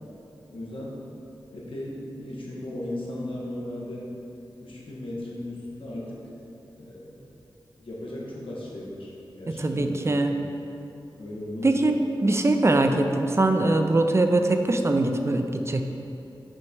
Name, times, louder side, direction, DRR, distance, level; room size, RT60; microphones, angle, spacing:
voice 1, 0.5-1.0 1.5-4.1 4.6-6.2 6.8-7.2 7.8-9.1 9.4-10.3 11.1-11.9, left 1 dB, 85° left, -5 dB, 1.5 m, -36 dB
voice 2, 9.6-10.3 11.6-15.8, right 2 dB, 30° right, 6 dB, 0.5 m, -22 dB
6.2 x 5.2 x 4.6 m, 2.9 s
wide cardioid pair, 60°, 9 cm